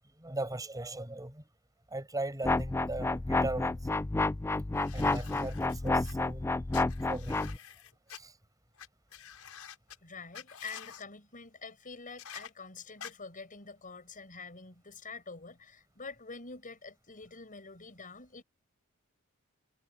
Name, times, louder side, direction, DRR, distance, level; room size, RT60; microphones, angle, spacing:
voice 1, 0.2-1.4 1.9-3.8 4.9-6.5 7.1-7.4 8.1-8.3, right 2 dB, 15° right, 6.1 m, -38 dB
sound 1, 2.4-7.6, left 2 dB, 10° left, 0.3 m, -30 dB
sound 2, 4.7-6.1 6.7-8.2 8.8-8.9 9.1-10.0 10.3-11.0 12.2-12.5 13.0-13.1, left 9 dB, 85° left, 6.2 m, -48 dB
voice 2, 10.0-18.4, left 4 dB, 40° left, 7.0 m, -46 dB
head